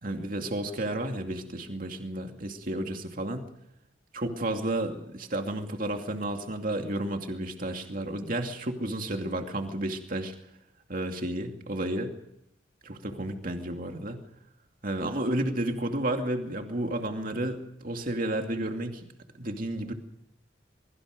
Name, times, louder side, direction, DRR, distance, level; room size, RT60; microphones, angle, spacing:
voice 1, 0.0-3.5 4.1-10.3 10.9-12.1 12.8-14.2 14.8-19.0 19.4-19.9, right 1 dB, 45° right, 4 dB, 2.5 m, -32 dB
24.0 x 23.0 x 5.2 m, 0.78 s
head